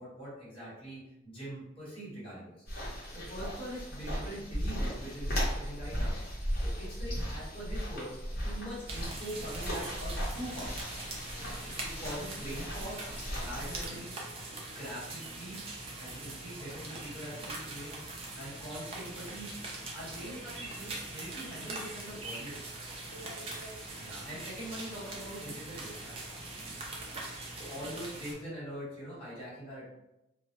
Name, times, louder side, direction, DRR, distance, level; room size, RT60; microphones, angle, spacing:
voice 1, 0.0-6.1 6.6-10.8 11.8-13.0 13.4-14.1 14.7-15.6 16.0-19.5 19.9-22.6 24.0-26.4 27.5-29.9, equal, 25° left, -9 dB, 1.1 m, -43 dB
sound 1, 2.7-13.9, equal, 50° left, 0.8 m, -36 dB
sound 2, 8.9-28.3, right 2 dB, 30° right, 0.4 m, -42 dB
voice 2, 11.3-11.7 20.2-20.5 23.1-23.9 26.9-27.2, equal, 50° right, -6 dB, 0.7 m, -51 dB
2.2 x 2.1 x 2.8 m, 0.89 s
head